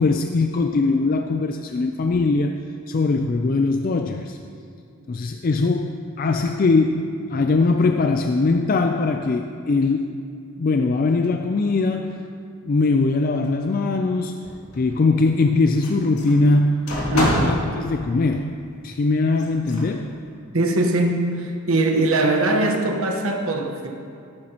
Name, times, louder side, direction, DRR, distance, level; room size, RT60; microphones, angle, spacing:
voice 1, 0.0-2.5 2.9-4.4 5.1-10.2 10.6-12.2 12.7-14.4 14.8-18.6 18.8-20.2, left 3 dB, 40° left, 5 dB, 0.3 m, -21 dB
sound 1, 14.4-15.1 15.8-17.7 19.4-19.9, left 1 dB, 85° left, 2.2 m, -27 dB
voice 2, 17.1-17.5 20.5-23.9, right 2 dB, 70° right, 2 dB, 1.2 m, -21 dB
14.0 x 11.0 x 2.9 m, 2.4 s
head